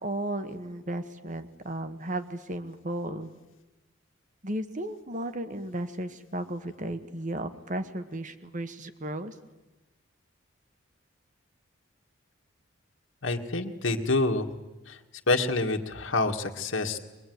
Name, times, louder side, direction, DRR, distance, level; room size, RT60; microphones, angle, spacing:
voice 1, 0.0-3.3 4.4-9.3, right 1 dB, 40° right, 10 dB, 1.5 m, -34 dB
voice 2, 13.2-14.5 14.9-15.0 15.3-17.0, left 2 dB, 70° left, 3 dB, 1.9 m, -27 dB
23.0 x 22.5 x 9.4 m, 1.1 s
head